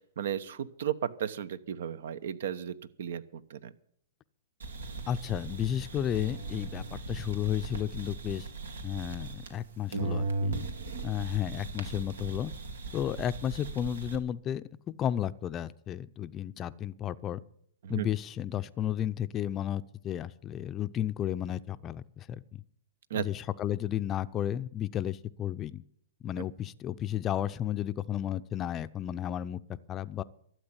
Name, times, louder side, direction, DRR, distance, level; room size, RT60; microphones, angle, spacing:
voice 1, 0.2-3.7 17.8-18.1 23.1-23.3, right 9 dB, 70° right, 16 dB, 0.9 m, -34 dB
sound 1, 4.6-9.6 9.9-14.2, right 3 dB, 90° right, 2.4 m, -38 dB
voice 2, 5.1-8.5 8.8-10.6 11.0-12.5 12.9-17.4 17.9-22.6 23.1-25.8 26.2-30.2, left 11 dB, 25° left, 13 dB, 0.5 m, -33 dB
12.5 x 7.9 x 9.8 m, 0.65 s
hypercardioid pair, 130°, 0 cm